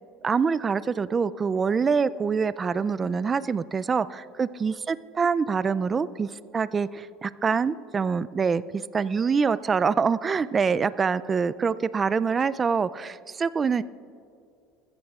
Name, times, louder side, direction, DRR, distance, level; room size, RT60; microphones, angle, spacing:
voice 1, 0.2-13.8, right 5 dB, 20° right, 16 dB, 0.3 m, -25 dB
21.0 x 15.0 x 2.4 m, 2.5 s
cardioid pair, 140°, 0 cm